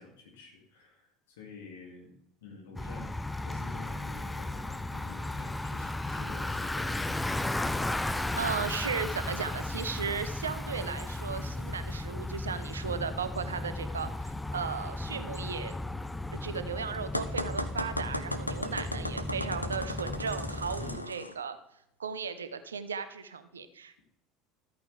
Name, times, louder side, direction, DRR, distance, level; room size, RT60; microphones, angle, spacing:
voice 1, 0.0-2.1 2.4-3.1 3.4-6.9 18.5-18.8 20.7-21.1, left 5 dB, 65° left, 1 dB, 2.6 m, -48 dB
Bicycle, 2.8-21.0, left 2 dB, 10° left, 0.5 m, -35 dB
voice 2, 8.0-15.8 16.3-21.6 22.0-24.0, right 6 dB, 75° right, 12 dB, 0.7 m, -36 dB
sound 1, 17.1-21.3, left 1 dB, 90° left, 0.6 m, -36 dB
13.5 x 8.8 x 3.5 m, 0.75 s
figure-of-eight pair, 70°, 0 cm